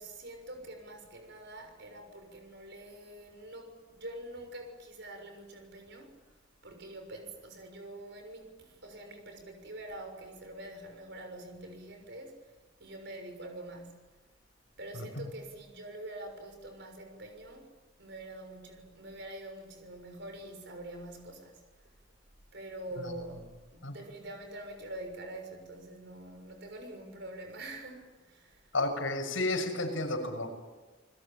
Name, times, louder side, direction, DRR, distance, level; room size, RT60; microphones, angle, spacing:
voice 1, 0.0-6.2 6.6-12.5 12.8-14.2 14.8-17.7 18.0-21.9 22.5-28.9, right 1 dB, 60° right, 6.6 m, -45 dB
voice 2, 28.7-30.5, left 2 dB, 80° left, 6.8 m, -31 dB
30.0 x 21.0 x 9.0 m
head